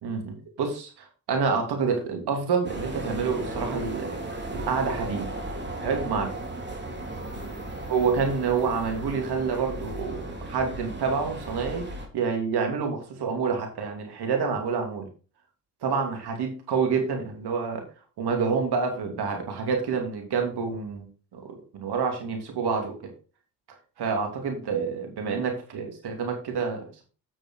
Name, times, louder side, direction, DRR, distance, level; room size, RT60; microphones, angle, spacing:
voice 1, 0.0-4.1 4.5-5.3 5.8-6.3 7.9-11.8 12.1-15.1 15.8-17.8 18.2-21.1 21.3-22.9 24.0-27.0, right 5 dB, 70° right, 3 dB, 2.9 m, -28 dB
sound 1, 2.6-12.1, right 1 dB, 25° right, 3.1 m, -35 dB
8.7 x 6.2 x 4.8 m, 0.36 s
supercardioid pair, 45°, 40 cm